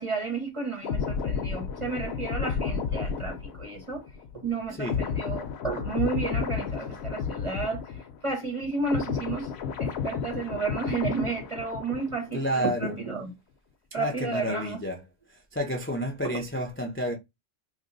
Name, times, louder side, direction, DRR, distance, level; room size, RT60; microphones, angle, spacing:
voice 1, 0.0-4.0 4.4-7.9 8.2-9.5 9.8-13.3 13.9-14.8 16.3-16.4, right 4 dB, 35° right, 0.6 m, -32 dB
sound 1, 0.8-8.3 8.6-12.3 12.6-12.9, left 6 dB, 65° left, 0.8 m, -32 dB
voice 2, 12.3-12.9 14.0-15.0 15.5-17.1, equal, 20° left, 0.4 m, -30 dB
2.8 x 2.2 x 3.9 m
omnidirectional pair, 1.3 m